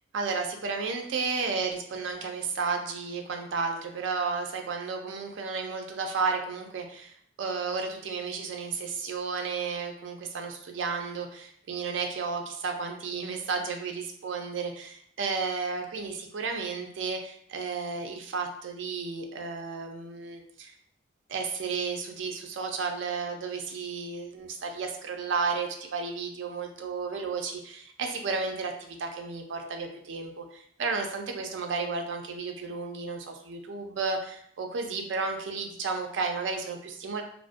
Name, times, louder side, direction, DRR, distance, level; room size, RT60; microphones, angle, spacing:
voice 1, 0.1-7.1 7.4-20.7 21.3-37.2, right 4 dB, 80° right, 4 dB, 0.4 m, -33 dB
2.4 x 2.1 x 2.4 m, 0.64 s
head